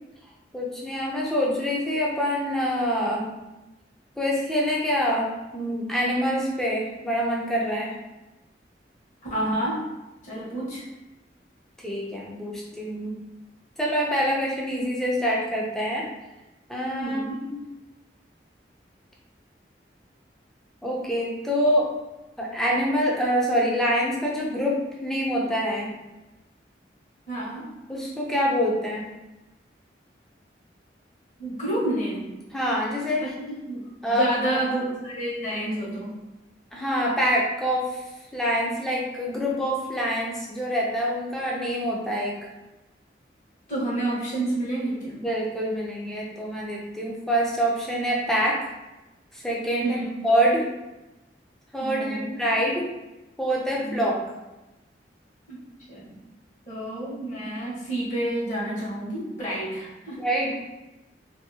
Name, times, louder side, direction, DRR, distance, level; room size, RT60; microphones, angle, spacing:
voice 1, 0.5-3.3 4.2-8.0 11.8-13.1 13.8-16.1 16.7-17.6 20.8-21.9 22.4-25.9 27.9-29.0 32.5-33.2 34.0-34.3 36.7-38.0 38.3-42.4 45.1-48.7 49.3-50.7 51.7-52.9 53.4-54.1 60.2-60.8, equal, 5° left, -4 dB, 0.5 m, -25 dB
voice 2, 9.3-9.8 10.2-10.8 17.0-17.4 27.3-27.6 31.4-32.2 33.2-36.1 43.7-45.2 47.0-47.1 49.8-50.2 51.8-52.4 53.8-54.1 55.5-55.6 55.9-56.1 56.7-60.2, right 1 dB, 45° left, -7 dB, 1.1 m, -29 dB
2.7 x 2.6 x 2.7 m, 1.0 s
head